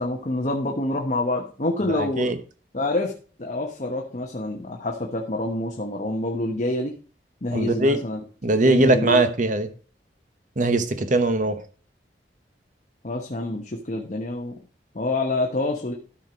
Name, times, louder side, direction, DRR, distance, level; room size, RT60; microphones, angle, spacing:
voice 1, 0.0-2.4 2.7-6.9 7.4-8.2 8.6-9.2 13.0-14.6 14.9-15.9, left 2 dB, 40° left, 1.0 m, -27 dB
voice 2, 1.9-2.4 7.5-8.0 8.4-9.7 10.6-11.6, right 2 dB, 45° right, 1.0 m, -21 dB
13.0 x 4.5 x 5.1 m
head